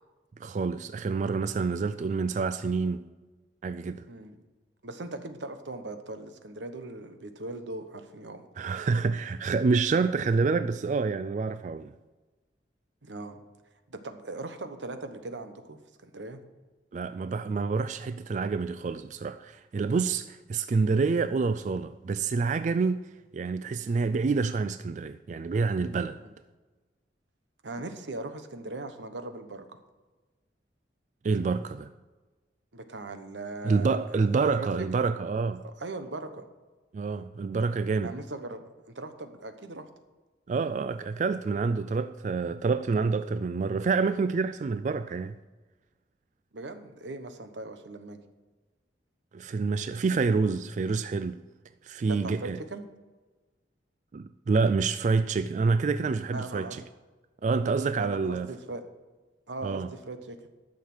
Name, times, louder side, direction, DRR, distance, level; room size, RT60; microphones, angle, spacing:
voice 1, 0.4-3.0 3.6-4.0 8.6-11.9 16.9-26.2 31.2-31.9 33.6-35.6 36.9-38.1 40.5-45.4 49.3-51.4 51.8-52.6 54.1-56.8 57.4-58.5 59.6-59.9, right 4 dB, 40° right, 0.3 m, -27 dB
voice 2, 4.8-8.4 13.0-13.4 13.9-16.4 27.6-29.8 32.7-34.7 35.6-36.4 38.0-39.9 46.5-48.2 52.0-52.9 56.3-56.8 58.0-58.8 59.5-60.4, right 2 dB, 90° right, 1.1 m, -39 dB
11.5 x 6.6 x 6.1 m
head